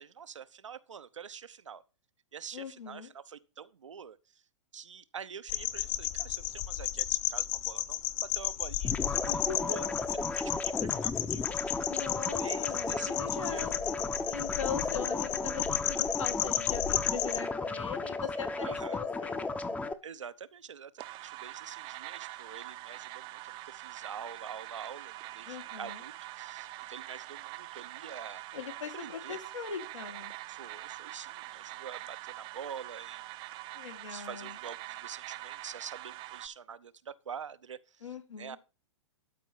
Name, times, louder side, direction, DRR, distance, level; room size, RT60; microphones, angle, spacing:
voice 1, 0.0-1.8 2.3-4.4 4.7-9.9 10.2-11.5 12.4-13.7 18.6-19.0 20.0-28.4 28.9-29.4 30.5-33.3 34.1-38.1 38.4-38.6, right 7 dB, 85° right, 0.8 m, -46 dB
voice 2, 2.5-3.1 9.3-9.8 11.9-13.8 14.3-19.5 25.5-26.0 28.5-30.3 33.7-34.6 38.0-38.6, left 7 dB, 80° left, 2.0 m, -40 dB
sound 1, 5.5-17.4, left 13 dB, 45° left, 0.8 m, -34 dB
sound 2, 8.8-19.9, left 3 dB, 10° left, 0.7 m, -34 dB
sound 3, 21.0-36.5, right 17 dB, 30° right, 0.6 m, -44 dB
12.5 x 4.6 x 5.6 m
hypercardioid pair, 120°, 15 cm